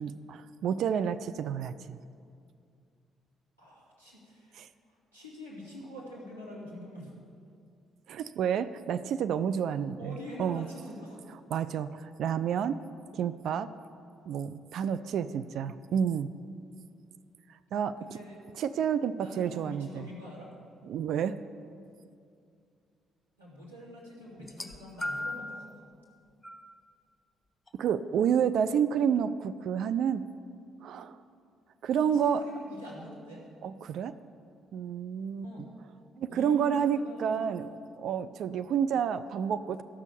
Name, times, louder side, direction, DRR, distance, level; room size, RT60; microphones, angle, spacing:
voice 1, 0.0-2.0 4.6-4.7 8.1-10.7 11.5-12.8 13.1-13.7 14.3-16.3 17.7-18.0 18.6-20.1 20.8-21.4 27.8-30.2 30.8-31.2 31.8-32.4 33.6-34.1 34.7-35.5 36.2-37.7 38.0-39.8, right 8 dB, 55° right, 12 dB, 0.3 m, -29 dB
voice 2, 3.6-4.6 4.9-7.1 10.0-11.2 18.0-18.5 19.1-20.5 23.4-25.8 32.0-33.5 35.4-35.7 36.3-37.7, left 1 dB, 90° right, -9 dB, 2.3 m, -45 dB
sound 1, 24.4-25.5 26.4-26.6 27.7-27.8, left 1 dB, 15° left, 0.9 m, -36 dB
12.5 x 6.2 x 7.0 m, 2.4 s
figure-of-eight pair, 45°, 0 cm